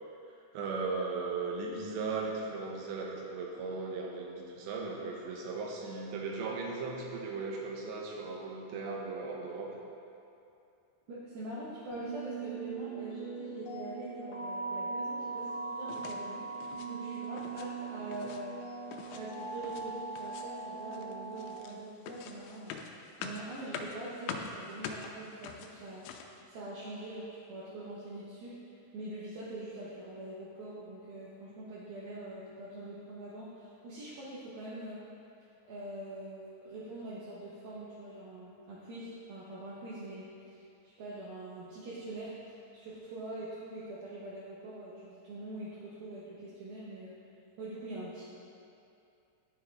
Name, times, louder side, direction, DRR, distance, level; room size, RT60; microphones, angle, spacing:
voice 1, 0.5-9.7, right 4 dB, 85° right, -1 dB, 3.3 m, -37 dB
voice 2, 11.1-18.6 19.1-22.8 23.2-35.0 35.6-47.2 47.6-48.2, right 1 dB, 70° right, -9 dB, 2.8 m, -44 dB
sound 1, 11.9-21.6, right 4 dB, 60° left, 3.3 m, -40 dB
sound 2, 15.9-16.2 16.5-16.9 17.2-17.7 17.9-18.4 18.9-19.9 20.1-20.6 20.9-26.4, left 6 dB, 85° left, 2.9 m, -44 dB
10.5 x 9.3 x 3.7 m, 2.6 s
omnidirectional pair, 4.9 m